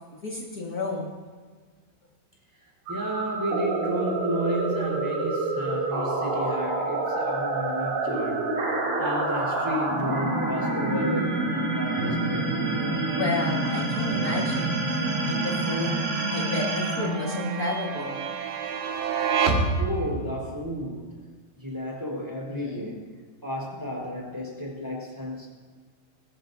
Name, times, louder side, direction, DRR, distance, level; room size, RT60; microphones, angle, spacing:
voice 1, 0.2-1.1 13.1-15.0 15.2-18.2 22.5-22.9, left 3 dB, 70° left, -3 dB, 0.8 m, -32 dB
voice 2, 2.6-8.4 9.0-12.5 19.8-21.3 21.6-23.1 23.4-25.5, equal, 5° right, -2 dB, 4.1 m, -32 dB
sound 1, 2.9-18.0, right 2 dB, 60° right, 4.2 m, -28 dB
sound 2, 7.7-20.3, right 5 dB, 90° right, 3.9 m, -33 dB
21.0 x 18.0 x 2.8 m, 1.5 s
omnidirectional pair, 4.9 m